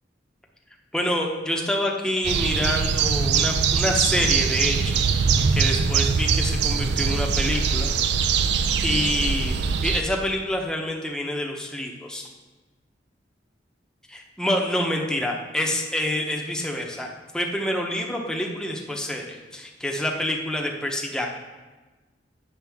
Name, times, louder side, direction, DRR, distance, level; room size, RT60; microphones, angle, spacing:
voice 1, 0.9-5.0 5.5-7.9 8.8-12.2 14.1-17.1 17.3-21.3, left 1 dB, 5° left, 0 dB, 0.8 m, -27 dB
sound 1, 2.2-10.0, right 6 dB, 65° right, 0.4 m, -22 dB
9.1 x 6.6 x 3.5 m, 1.2 s
head